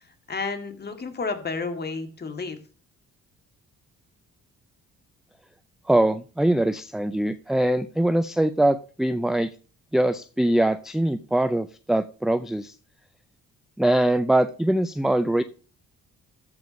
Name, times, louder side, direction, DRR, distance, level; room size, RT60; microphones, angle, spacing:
voice 1, 0.0-2.6, left 4 dB, 35° left, 5 dB, 2.1 m, -31 dB
voice 2, 5.9-9.5 9.9-12.7 13.8-15.4, right 1 dB, ahead, 12 dB, 0.4 m, -22 dB
14.0 x 4.8 x 5.3 m, 0.38 s
cardioid pair, 90°, 30 cm